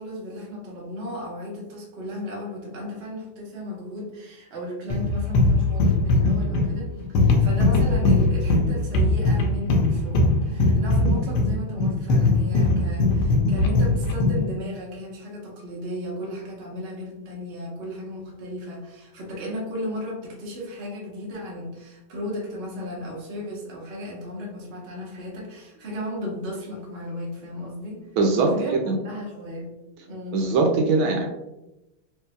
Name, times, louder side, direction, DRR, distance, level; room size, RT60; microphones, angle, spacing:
voice 1, 0.0-28.1 28.4-28.7 29.0-29.7 30.0-30.4, left 1 dB, 40° right, -3 dB, 0.9 m, -35 dB
sound 1, 4.9-14.5, left 2 dB, 75° left, 1.3 m, -20 dB
voice 2, 28.2-29.0 30.3-31.3, right 3 dB, 80° right, 1 dB, 1.3 m, -21 dB
4.5 x 3.1 x 2.2 m, 0.94 s
omnidirectional pair, 2.4 m